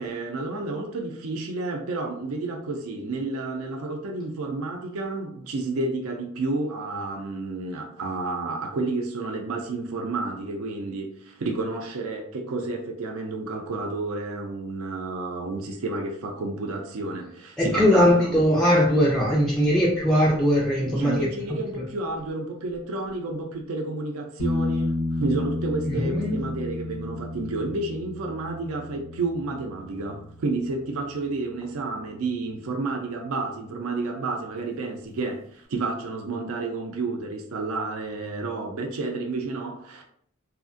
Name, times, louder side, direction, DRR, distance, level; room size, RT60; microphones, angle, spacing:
voice 1, 0.0-18.4 20.8-40.0, right 3 dB, 75° right, 0.4 m, -31 dB
voice 2, 17.6-21.8 25.9-26.4, equal, 5° left, 0.3 m, -21 dB
sound 1, 24.4-32.0 35.0-35.1, left 2 dB, 85° left, 0.8 m, -32 dB
2.7 x 2.4 x 2.5 m
head